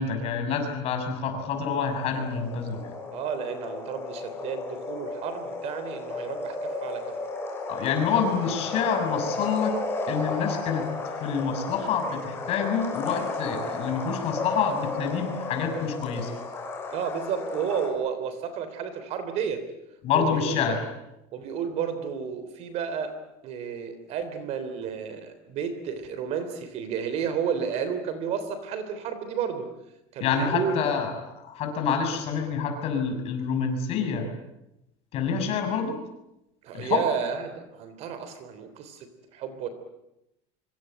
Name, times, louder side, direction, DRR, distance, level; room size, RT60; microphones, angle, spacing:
voice 1, 0.0-2.9 7.7-10.8 11.2-16.3 20.0-20.8 30.2-34.3 35.1-36.0 36.7-37.1, left 6 dB, 40° left, 5 dB, 6.5 m, -27 dB
sound 1, 1.6-17.9, left 3 dB, 15° left, 6.6 m, -34 dB
voice 2, 3.1-7.2 16.9-19.6 20.1-20.8 21.3-23.2 23.4-29.7 30.1-30.8 36.6-39.7, right 7 dB, 45° right, 10 dB, 3.5 m, -32 dB
25.5 x 24.5 x 9.0 m, 0.89 s
cardioid pair, 180°, 16 cm